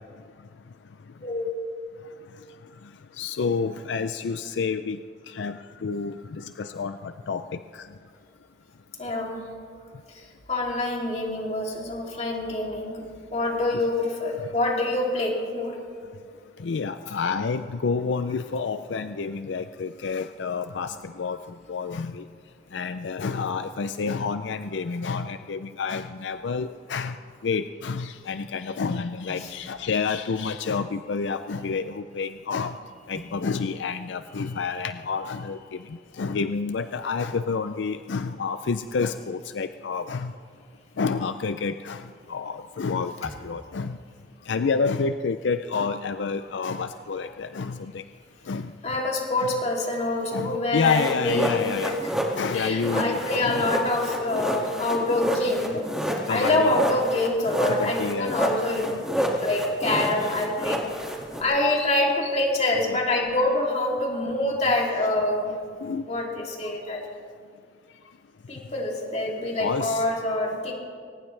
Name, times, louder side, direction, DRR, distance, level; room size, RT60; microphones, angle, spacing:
voice 1, 1.2-1.5 9.0-9.4 10.1-13.1 13.3-15.8 29.3-29.5 33.1-33.2 48.8-52.1 52.5-55.8 56.3-60.8 61.4-65.5 66.1-67.0 68.5-70.7, left 2 dB, 40° left, -1 dB, 3.0 m, -26 dB
voice 2, 3.2-5.0 5.3-7.9 16.6-21.4 21.7-22.3 22.7-27.2 27.4-32.8 33.1-40.3 41.0-44.0 44.5-48.0 48.5-48.7 49.4-49.5 50.3-52.0 52.4-53.6 56.3-56.8 57.7-58.3 61.7-62.0 62.2-62.3 62.9-63.0 65.8-66.1 69.6-70.0, left 5 dB, 85° left, 10 dB, 0.5 m, -29 dB
sound 1, 50.9-61.4, equal, 5° right, 2.1 m, -29 dB
22.5 x 19.0 x 3.3 m, 2.1 s
head